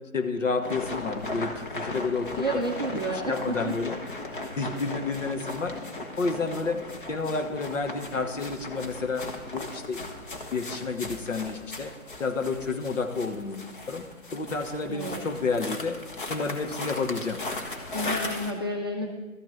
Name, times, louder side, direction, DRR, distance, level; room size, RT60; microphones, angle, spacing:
voice 1, 0.1-2.7 2.9-4.0 4.6-5.8 6.2-10.1 10.5-16.0 16.3-17.4, left 4 dB, 60° left, 7 dB, 1.4 m, -30 dB
sound 1, 0.6-18.5, left 2 dB, 35° left, 1.2 m, -37 dB
voice 2, 2.4-3.7 14.9-15.2 17.9-19.1, right 1 dB, 15° right, -1 dB, 0.6 m, -30 dB
13.0 x 6.1 x 8.5 m, 1.2 s
figure-of-eight pair, 155°, 43 cm